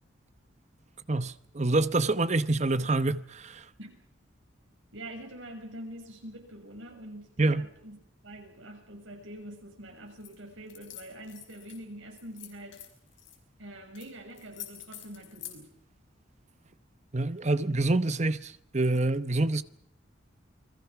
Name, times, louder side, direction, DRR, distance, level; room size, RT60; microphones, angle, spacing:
voice 1, 1.1-3.6 7.4-7.7 17.1-19.6, right 2 dB, 35° right, 0.9 m, -26 dB
voice 2, 4.9-8.0 8.2-12.8 13.6-15.7, right 1 dB, 85° right, 6.5 m, -45 dB
sound 1, 10.2-10.4 10.7-11.8 12.2-13.4 13.9-14.1 14.3-15.6, left 13 dB, 75° left, 5.1 m, -46 dB
28.5 x 21.5 x 6.0 m
head